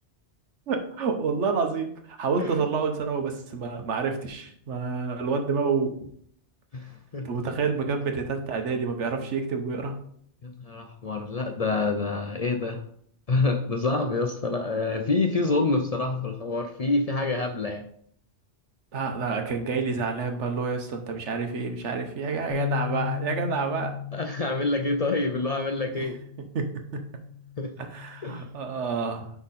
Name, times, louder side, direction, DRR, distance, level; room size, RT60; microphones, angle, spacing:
voice 1, 0.7-6.0 7.2-9.9 18.9-23.9 25.9-26.1 26.5-27.0 27.8-29.3, right 5 dB, 80° right, 5 dB, 1.3 m, -28 dB
voice 2, 6.7-7.4 10.4-12.8 13.3-17.8 24.1-26.2 27.6-27.7 28.2-28.5, left 3 dB, 45° left, 4 dB, 0.5 m, -27 dB
sound 1, 22.5-28.7, left 10 dB, 85° left, 1.2 m, -37 dB
9.8 x 3.6 x 4.2 m, 0.65 s
omnidirectional pair, 1.2 m